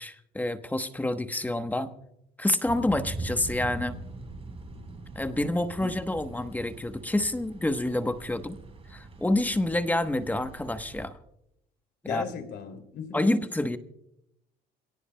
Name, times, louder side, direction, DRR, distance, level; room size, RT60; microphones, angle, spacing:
voice 1, 0.0-1.9 2.4-4.0 5.1-8.6 8.9-11.1 12.0-12.2 13.1-13.8, left 1 dB, 10° left, 9 dB, 1.0 m, -28 dB
Thunder / Rain, 2.7-11.1, right 2 dB, 35° right, 4.3 m, -41 dB
voice 2, 12.1-13.4, left 7 dB, 80° left, 6 dB, 2.6 m, -37 dB
27.0 x 17.5 x 2.2 m, 0.82 s
cardioid pair, 110°, 17 cm